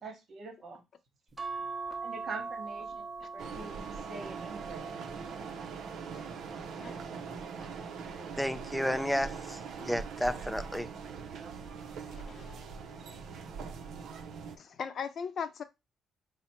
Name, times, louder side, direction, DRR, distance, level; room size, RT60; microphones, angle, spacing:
voice 1, 0.0-0.8 2.0-4.9, right 4 dB, 55° right, 1.1 m, -44 dB
sound 1, 1.4-8.0 8.6-10.0 11.3-11.7 12.0-12.1, right 4 dB, 15° right, 0.9 m, -43 dB
sound 2, 3.4-14.6, right 5 dB, 75° right, 0.5 m, -42 dB
voice 2, 7.3-7.7 12.0-12.6 14.6-15.6, left 6 dB, 55° left, 0.5 m, -40 dB
voice 3, 8.4-10.9, equal, 5° left, 0.3 m, -32 dB
4.2 x 2.0 x 4.2 m
cardioid pair, 90°, 0 cm